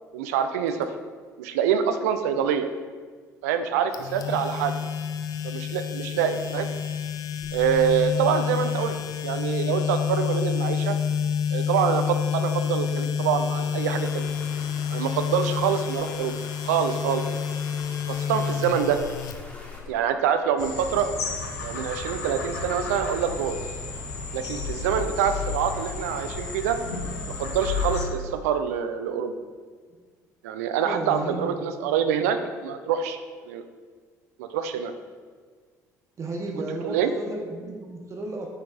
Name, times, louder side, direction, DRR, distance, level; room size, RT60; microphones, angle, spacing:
voice 1, 0.1-0.9 1.4-2.7 3.4-4.8 5.4-6.7 7.5-9.0 9.2-11.0 11.5-14.3 14.9-16.4 16.6-17.2 18.1-19.0 19.9-21.1 21.6-23.6 24.3-26.8 27.4-29.3 30.4-33.2 33.5-33.6 34.4-34.9 36.7-37.1, right 8 dB, 65° right, 9 dB, 0.5 m, -25 dB
sound 1, 3.9-19.9, left 7 dB, 45° left, 0.5 m, -29 dB
sound 2, 13.8-19.8, left 1 dB, 15° left, 1.5 m, -44 dB
sound 3, 20.6-28.0, left 4 dB, 75° left, 0.9 m, -32 dB
voice 2, 30.8-31.7 36.2-38.5, right 2 dB, 35° right, 0 dB, 1.0 m, -33 dB
9.5 x 6.4 x 2.5 m, 1.5 s
figure-of-eight pair, 55°, 9 cm